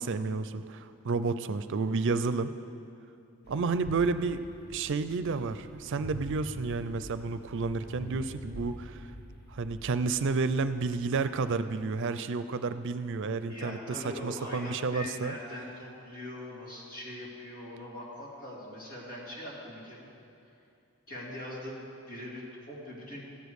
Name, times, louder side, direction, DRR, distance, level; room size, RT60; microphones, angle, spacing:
voice 1, 0.0-2.5 3.5-4.4 4.7-9.0 9.5-15.3, right 4 dB, 60° right, 12 dB, 0.4 m, -31 dB
sound 1, 3.4-11.6, equal, 45° left, 1.0 m, -46 dB
voice 2, 13.5-20.1 21.1-23.2, left 1 dB, 85° left, -6 dB, 3.3 m, -41 dB
14.5 x 5.1 x 8.0 m, 2.7 s
head